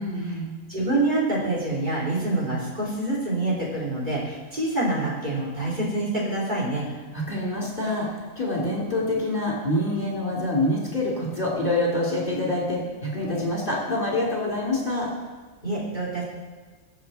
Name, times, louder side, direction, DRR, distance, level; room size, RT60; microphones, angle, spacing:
voice 1, 0.0-0.5 7.1-15.1, left 1 dB, 40° left, -4 dB, 4.0 m, -26 dB
voice 2, 0.7-6.9 15.6-16.2, right 2 dB, 35° right, -6 dB, 4.7 m, -26 dB
23.5 x 7.9 x 4.6 m, 1.4 s
omnidirectional pair, 1.4 m